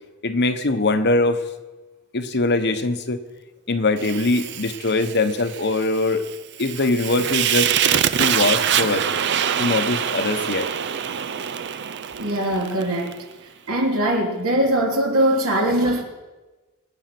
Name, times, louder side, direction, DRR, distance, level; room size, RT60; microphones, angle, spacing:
voice 1, 0.2-1.4 2.1-3.2 3.7-6.2 6.6-7.8 8.2-9.1 9.6-10.7, left 2 dB, 50° left, 8 dB, 1.1 m, -22 dB
Fire, 4.0-13.2, right 9 dB, 50° right, 0.6 m, -25 dB
voice 2, 12.2-13.2 13.7-16.0, right 1 dB, 65° right, 0 dB, 3.2 m, -21 dB
24.5 x 8.9 x 6.1 m, 1.2 s
head